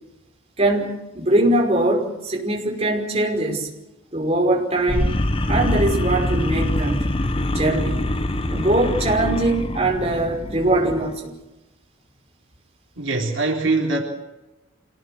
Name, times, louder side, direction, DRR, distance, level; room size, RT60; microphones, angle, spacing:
voice 1, 0.6-3.7 4.1-5.1 5.5-7.0 7.5-8.1 8.5-11.3, right 1 dB, 30° right, 1 dB, 5.3 m, -21 dB
sound 1, 4.9-11.2, left 1 dB, 25° left, 1.2 m, -24 dB
voice 2, 13.0-14.0, right 3 dB, 65° right, 0 dB, 3.9 m, -22 dB
27.5 x 18.5 x 7.8 m, 1.0 s
head